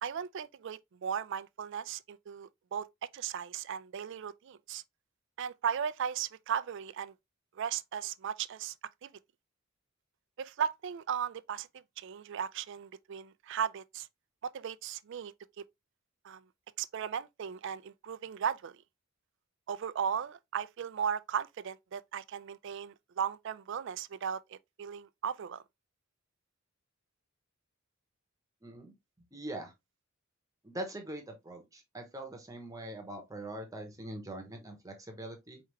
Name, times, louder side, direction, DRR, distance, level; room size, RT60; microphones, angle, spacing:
voice 1, 0.0-2.9 3.1-4.8 5.4-7.1 7.6-8.7 9.0-9.1 10.4-14.1 14.4-15.6 16.2-16.4 16.8-18.8 19.7-25.6, right 8 dB, 60° right, 0.3 m, -36 dB
voice 2, 28.6-28.9 29.3-29.7 30.6-35.6, right 1 dB, 15° right, 0.9 m, -42 dB
4.6 x 3.4 x 3.0 m
head